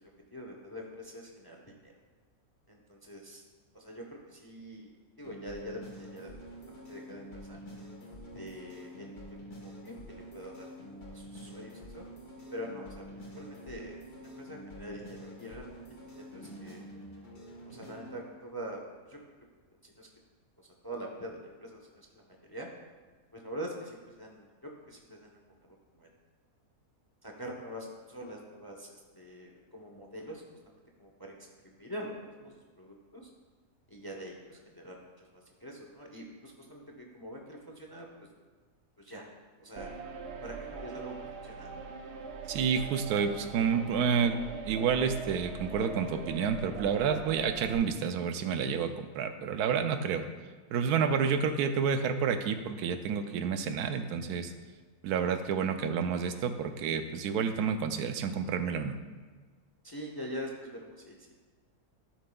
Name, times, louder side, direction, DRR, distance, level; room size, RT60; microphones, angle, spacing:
voice 1, 0.0-1.6 1.8-1.9 2.7-3.4 3.7-4.9 5.2-6.3 6.7-7.6 8.2-12.0 12.5-13.0 13.3-16.8 17.7-18.8 19.1-19.2 19.8-20.1 20.8-22.7 23.3-24.5 24.9-26.1 27.2-31.3 31.6-33.2 33.9-38.1 39.0-39.2 39.6-39.9 40.4-41.1 41.4-41.7 59.8-61.3, equal, 20° left, 0 dB, 0.6 m, -44 dB
sound 1, 5.2-18.2, equal, 80° left, 2.1 m, -47 dB
sound 2, 39.8-47.8, right 5 dB, 60° right, 0.7 m, -42 dB
voice 2, 42.5-44.4 44.6-50.3 50.7-54.5 55.0-59.0, right 6 dB, 90° right, 8 dB, 1.1 m, -29 dB
12.0 x 7.2 x 2.3 m, 1.4 s
omnidirectional pair, 1.6 m